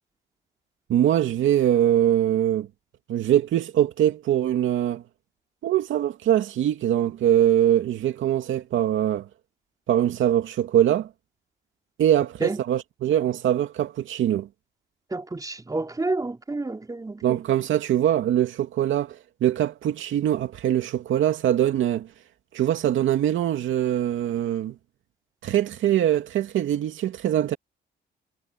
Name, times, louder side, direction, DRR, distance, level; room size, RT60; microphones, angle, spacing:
voice 1, 0.9-2.7 3.1-5.0 5.6-9.3 9.9-11.1 12.0-14.5 17.2-22.1 22.5-24.7 25.4-27.6, right 11 dB, 75° right, 2.5 m, -22 dB
voice 2, 15.1-17.4, right 2 dB, 20° right, 3.9 m, -29 dB
cardioid pair, 90°, 20 cm